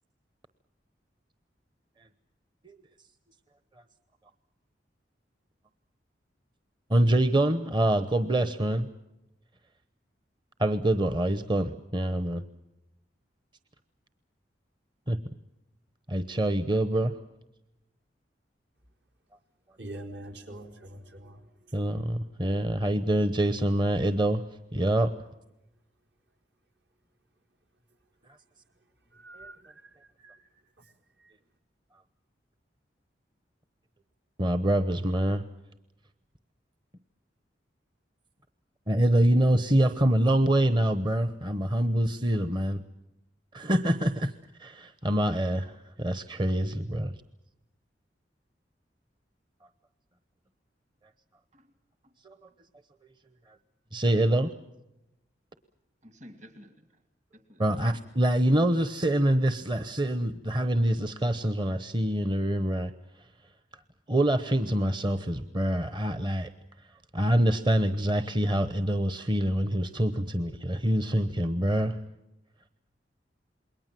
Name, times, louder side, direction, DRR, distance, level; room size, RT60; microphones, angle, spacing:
voice 1, 6.9-8.9 10.6-12.4 15.1-15.2 16.1-17.2 21.7-24.4 24.7-25.1 29.4-29.5 34.4-35.4 38.9-42.8 43.5-44.3 44.6-47.1 52.2-52.4 53.5-53.6 53.9-54.5 57.6-62.9 63.2-63.3 64.1-66.5 67.1-72.0, right 1 dB, 25° right, 11 dB, 0.9 m, -25 dB
voice 2, 19.8-21.8 22.4-22.5 28.4-31.4, right 1 dB, 70° right, 4 dB, 4.5 m, -47 dB
voice 3, 56.0-57.0 57.3-58.0, equal, 40° right, 7 dB, 2.3 m, -52 dB
28.0 x 21.5 x 7.6 m, 0.93 s
head